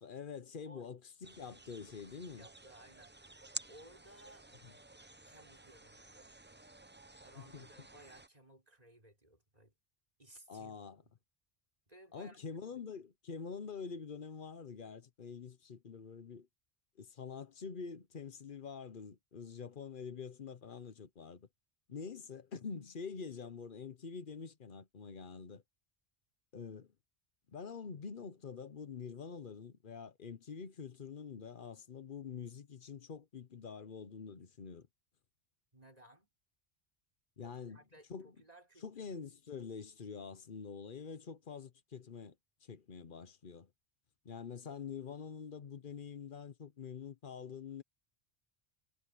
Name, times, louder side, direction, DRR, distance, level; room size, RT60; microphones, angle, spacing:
voice 1, 0.0-2.5 4.6-4.7 7.4-7.7 10.5-11.0 12.1-16.5 17.0-21.5 21.9-25.6 26.5-26.9 27.5-34.9 37.4-37.8 38.1-38.3 38.8-42.3 42.6-43.7 44.2-47.8, left 6 dB, 50° left, 1.0 m, -46 dB
sound 1, 1.2-8.3, right 2 dB, 15° right, 0.5 m, -52 dB
voice 2, 1.9-3.2 3.7-4.5 5.3-6.3 7.2-9.7 10.2-10.8 11.0-11.1 11.9-12.8 35.7-36.3 37.4-39.1, right 1 dB, 35° right, 5.4 m, -60 dB
omnidirectional pair, 1.1 m